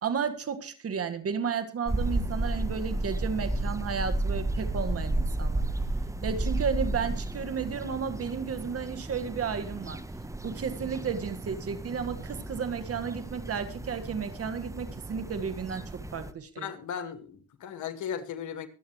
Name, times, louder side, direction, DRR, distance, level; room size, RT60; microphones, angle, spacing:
voice 1, 0.0-5.7 6.2-10.0 10.4-16.7, right 6 dB, 50° right, 9 dB, 1.7 m, -33 dB
sound 1, 1.9-16.3, right 2 dB, 10° right, 1.0 m, -33 dB
voice 2, 16.6-18.7, left 8 dB, 75° left, 8 dB, 2.0 m, -36 dB
23.5 x 8.7 x 3.1 m, 0.38 s
cardioid pair, 90°, 30 cm